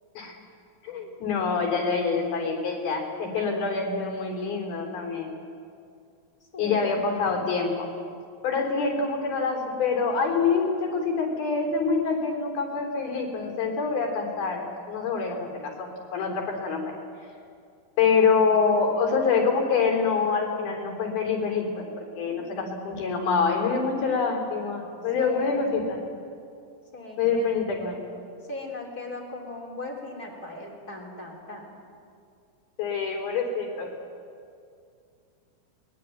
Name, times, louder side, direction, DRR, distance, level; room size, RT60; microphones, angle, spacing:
voice 1, 0.8-5.3 6.6-7.9 8.4-16.9 18.0-26.1 27.2-28.0 32.8-33.9, left 5 dB, 85° left, 0 dB, 5.6 m, -26 dB
voice 2, 6.5-7.0 22.3-22.7 25.2-25.7 26.9-27.6 28.5-31.8, left 2 dB, 25° left, 1 dB, 3.8 m, -39 dB
22.5 x 21.0 x 9.3 m, 2.4 s
omnidirectional pair, 4.3 m